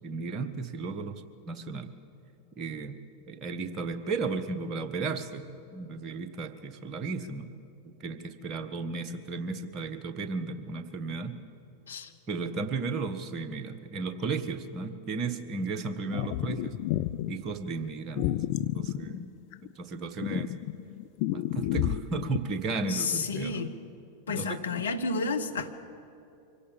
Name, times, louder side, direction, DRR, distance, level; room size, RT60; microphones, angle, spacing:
voice 1, 0.0-1.9 2.6-3.0 3.3-5.5 5.7-7.5 7.8-11.4 12.3-16.8 17.3-18.3 18.7-19.3 19.8-20.5 21.3-23.6 24.3-24.8, right 4 dB, 30° right, 8 dB, 1.3 m, -34 dB
sound 1, 16.1-17.3 18.2-19.7 20.2-22.4, left 15 dB, 45° left, 0.5 m, -31 dB
voice 2, 22.9-23.7 24.3-25.8, left 4 dB, 70° left, 6 dB, 1.2 m, -31 dB
24.0 x 17.0 x 7.0 m, 2.7 s
figure-of-eight pair, 90°, 0 cm